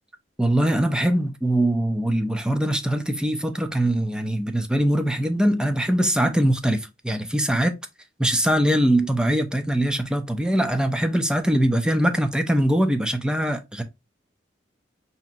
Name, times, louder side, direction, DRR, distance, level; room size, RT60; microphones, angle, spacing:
voice 1, 0.4-7.7 8.2-13.8, right 1 dB, 5° right, 0.4 m, -22 dB
5.6 x 2.8 x 2.6 m
head